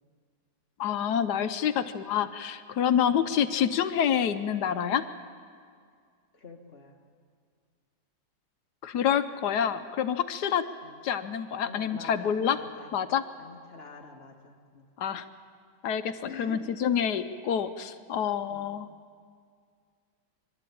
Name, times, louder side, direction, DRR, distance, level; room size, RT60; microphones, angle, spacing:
voice 1, 0.8-5.0 8.8-10.6 11.0-12.6 12.9-13.2 15.0-15.2 15.8-16.1 16.4-18.9, left 8 dB, 70° left, 11 dB, 1.2 m, -27 dB
voice 2, 6.3-7.0 10.8-11.0 11.6-12.9 13.4-14.9 16.2-16.6 18.5-18.7, left 4 dB, 35° left, 2 dB, 1.8 m, -46 dB
25.5 x 12.5 x 8.6 m, 2.1 s
omnidirectional pair, 2.0 m